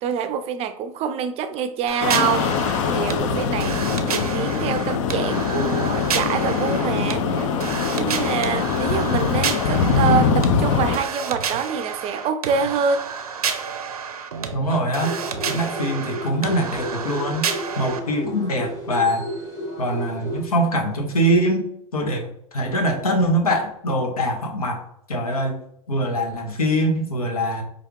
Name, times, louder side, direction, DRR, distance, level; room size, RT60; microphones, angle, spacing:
voice 1, 0.0-3.8 4.0-7.4 8.0-13.1, right 6 dB, 35° right, 9 dB, 0.4 m, -26 dB
sound 1, 1.9-18.0, right 6 dB, 85° right, 0.5 m, -30 dB
sound 2, 2.0-11.0, left 6 dB, 60° left, 0.5 m, -22 dB
voice 2, 14.5-15.2 15.5-17.5 17.8-19.3 19.8-25.6 25.9-27.6, equal, 85° left, 4 dB, 0.9 m, -23 dB
sound 3, 15.0-20.4, equal, 15° left, 1.2 m, -32 dB
4.7 x 2.5 x 3.1 m, 0.72 s
hypercardioid pair, 100°, 18 cm